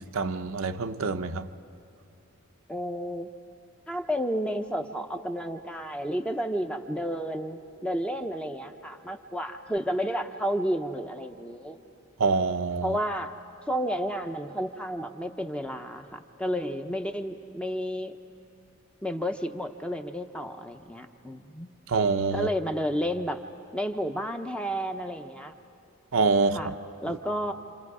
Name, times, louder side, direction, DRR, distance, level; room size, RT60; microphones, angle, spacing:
voice 1, 0.0-1.5 12.2-13.0 21.9-22.5 26.1-26.6, right 4 dB, 70° right, 0.7 m, -25 dB
voice 2, 2.7-3.3 3.9-11.8 12.8-13.3 13.7-18.2 19.0-21.7 22.3-23.4 23.7-25.5 26.5-26.7 27.0-27.5, equal, 5° left, 0.7 m, -31 dB
28.0 x 26.5 x 4.9 m
head